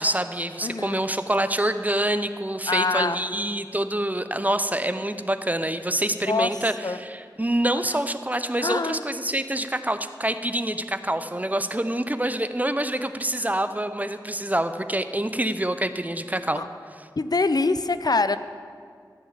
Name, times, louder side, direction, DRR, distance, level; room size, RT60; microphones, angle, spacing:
voice 1, 0.0-16.6, right 1 dB, 20° right, 10 dB, 0.6 m, -26 dB
voice 2, 0.6-1.0 2.7-3.2 6.3-6.5 6.8-7.0 8.6-9.0 16.6-16.7 17.2-18.4, left 3 dB, 60° left, 12 dB, 0.5 m, -24 dB
15.0 x 6.2 x 8.9 m, 2.1 s
wide cardioid pair, 55°, 8 cm